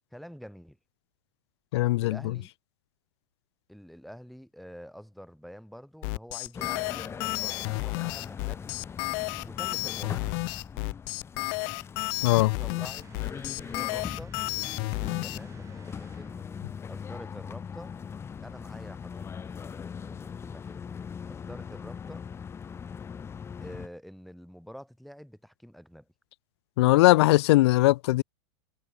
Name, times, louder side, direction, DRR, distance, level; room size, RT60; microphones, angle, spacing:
voice 1, 0.1-0.8 2.0-2.5 3.7-8.7 9.4-10.2 12.4-13.0 13.3-14.4 15.2-16.3 16.9-18.0 18.4-20.9 21.3-22.3 23.6-26.1, equal, ahead, 2.8 m, -47 dB
voice 2, 1.7-2.3 12.2-12.5 26.8-28.2, left 18 dB, 70° left, 0.4 m, -20 dB
sound 1, 6.0-15.4, left 40 dB or more, 50° left, 1.6 m, -32 dB
sound 2, 6.5-23.9, left 6 dB, 15° left, 2.0 m, -40 dB
sound 3, 12.8-16.7, right 7 dB, 20° right, 7.5 m, -54 dB
supercardioid pair, 140°, 14 cm